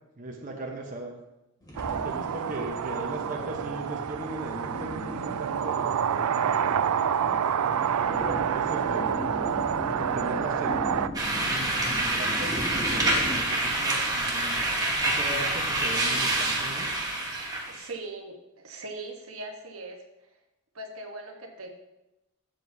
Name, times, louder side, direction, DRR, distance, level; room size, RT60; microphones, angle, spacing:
voice 1, 0.2-1.2 1.9-6.9 8.1-9.2 10.0-11.1 11.5-14.6 15.0-16.9, right 1 dB, 40° right, 0 dB, 0.9 m, -38 dB
sound 1, 1.6-13.4, left 1 dB, 20° left, 2.4 m, -39 dB
sound 2, 1.8-11.1, right 8 dB, 90° right, 0.4 m, -28 dB
sound 3, 11.1-17.8, right 2 dB, 15° right, 1.3 m, -27 dB
voice 2, 17.7-20.0 20.7-21.8, right 2 dB, 70° right, 3 dB, 1.2 m, -40 dB
12.5 x 7.7 x 2.7 m, 0.93 s
head